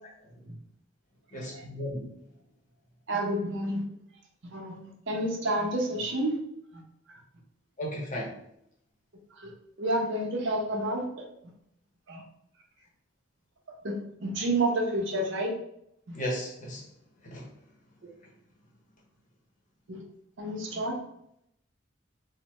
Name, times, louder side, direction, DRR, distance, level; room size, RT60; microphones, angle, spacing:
voice 1, 1.3-2.1 7.8-8.4 16.1-16.8 17.2-17.5, equal, 40° left, -3 dB, 0.8 m, -35 dB
voice 2, 3.1-3.8 4.5-6.4 9.4-9.5 9.8-11.1 12.1-12.2 13.8-15.5 16.1-16.2 19.9-20.0 20.4-21.0, right 1 dB, 65° right, 0 dB, 0.7 m, -29 dB
3.2 x 2.1 x 3.0 m, 0.75 s
head